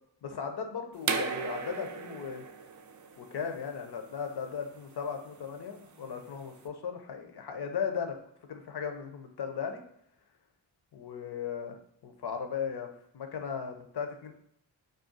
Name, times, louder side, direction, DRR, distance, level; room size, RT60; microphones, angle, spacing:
voice 1, 0.2-2.4 3.2-8.2 8.5-9.8 10.9-12.9 13.1-14.3, left 6 dB, 60° left, 5 dB, 0.7 m, -37 dB
sound 1, 1.0-6.6, right 5 dB, 45° right, 0.5 m, -38 dB
2.5 x 2.3 x 3.8 m, 0.73 s
cardioid pair, 45°, 46 cm